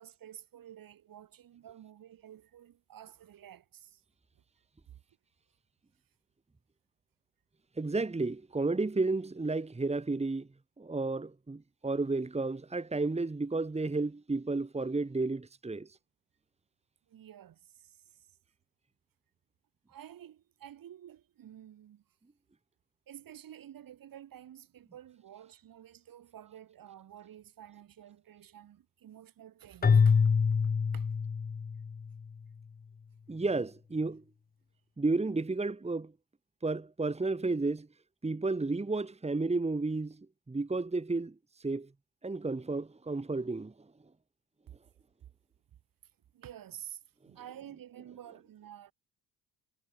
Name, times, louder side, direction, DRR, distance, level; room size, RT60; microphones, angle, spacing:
voice 1, 0.0-4.0 4.9-5.0 17.1-18.4 19.9-22.0 23.1-30.3 30.9-31.1 44.7-44.8 46.3-47.0 47.3-48.9, right 10 dB, 65° right, 5.0 m, -51 dB
voice 2, 7.8-10.5 10.8-15.9 33.3-34.2 35.0-36.1 36.6-37.9 38.2-40.2 40.5-41.3 41.6-41.9 42.2-43.7, right 3 dB, 15° right, 1.8 m, -32 dB
Keyboard (musical), 29.8-32.1, left 5 dB, 25° left, 0.8 m, -25 dB
supercardioid pair, 65°, 36 cm